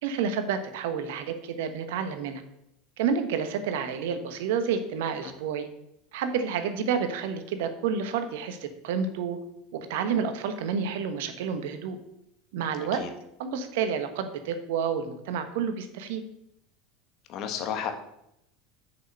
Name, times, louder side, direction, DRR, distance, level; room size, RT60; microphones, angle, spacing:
voice 1, 0.0-2.4 3.0-5.7 6.1-9.4 9.7-12.0 12.5-13.0 13.4-16.2, right 6 dB, 70° right, 9 dB, 1.2 m, -29 dB
voice 2, 17.3-17.9, left 8 dB, 50° left, 6 dB, 1.5 m, -32 dB
6.6 x 6.2 x 6.7 m, 0.80 s
hypercardioid pair, 80°, 0 cm